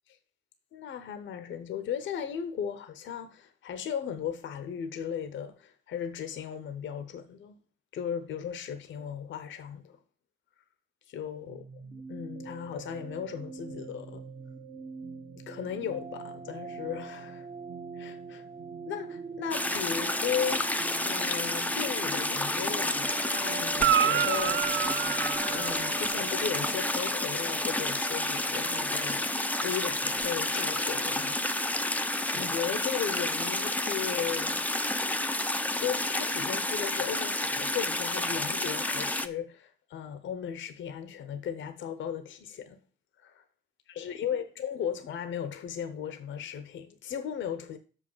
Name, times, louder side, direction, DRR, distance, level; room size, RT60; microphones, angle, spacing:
voice 1, 0.7-7.6 7.9-10.0 11.1-14.2 15.4-17.5 17.9-18.4 18.9-20.7 21.0-25.0 25.5-29.3 29.6-31.4 32.3-34.7 35.6-42.8 43.2-43.4 43.9-47.8, left 8 dB, 70° left, 0.9 m, -36 dB
sound 1, 11.5-31.0, right 6 dB, 35° right, 1.3 m, -43 dB
sound 2, 19.5-39.3, left 1 dB, 10° left, 0.6 m, -30 dB
Guitar, 23.7-26.3 30.2-30.3, right 10 dB, 75° right, 0.5 m, -28 dB
6.4 x 5.6 x 7.2 m
cardioid pair, 90°, 20 cm